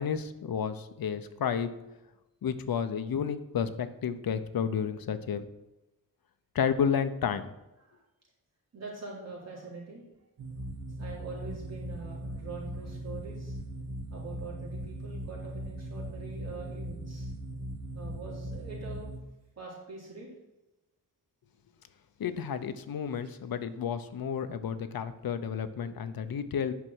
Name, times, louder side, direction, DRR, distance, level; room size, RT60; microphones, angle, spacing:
voice 1, 0.0-1.7 2.4-5.5 6.5-7.5 22.2-26.7, left 7 dB, 70° left, 10 dB, 0.8 m, -31 dB
voice 2, 8.7-10.0 11.0-13.6 14.1-17.3 17.9-19.1 19.6-20.3 26.2-26.4, right 3 dB, 45° right, -5 dB, 3.9 m, -44 dB
sound 1, 10.4-19.2, right 1 dB, 85° right, 1.7 m, -39 dB
9.5 x 5.9 x 6.2 m, 0.97 s
wide cardioid pair, 140°, 36 cm